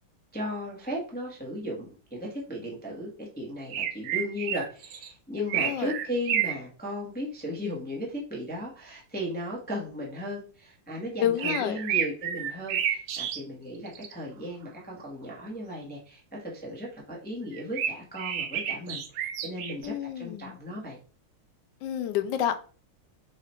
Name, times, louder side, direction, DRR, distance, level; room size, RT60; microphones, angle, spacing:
voice 1, 0.3-21.0, equal, 5° left, -4 dB, 0.8 m, -36 dB
sound 1, 3.7-5.1 5.5-6.6 11.4-13.4 13.9-14.1 17.5-19.9, right 9 dB, 70° right, 1.2 m, -30 dB
voice 2, 5.4-5.9 11.2-11.8 19.8-20.6 21.8-22.6, left 11 dB, 75° left, 9 dB, 1.2 m, -29 dB
4.8 x 2.4 x 4.3 m, 0.39 s
omnidirectional pair, 2.3 m